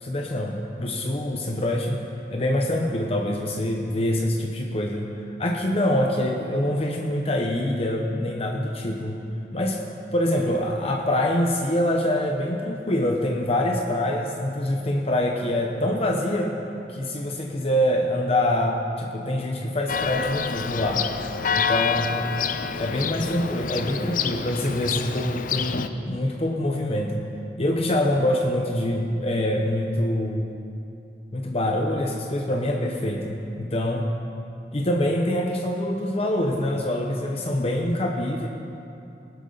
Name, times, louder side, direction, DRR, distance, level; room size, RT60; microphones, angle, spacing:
voice 1, 0.0-2.0 2.3-5.1 5.4-9.2 9.5-9.8 10.1-16.5 16.9-21.0 21.5-22.2 22.8-27.3 27.6-30.6 31.3-34.1 34.7-38.5, left 1 dB, 35° left, 1 dB, 0.9 m, -25 dB
Church bell, 19.9-25.9, left 6 dB, 50° left, 0.5 m, -28 dB
19.5 x 12.0 x 4.0 m, 2.7 s
head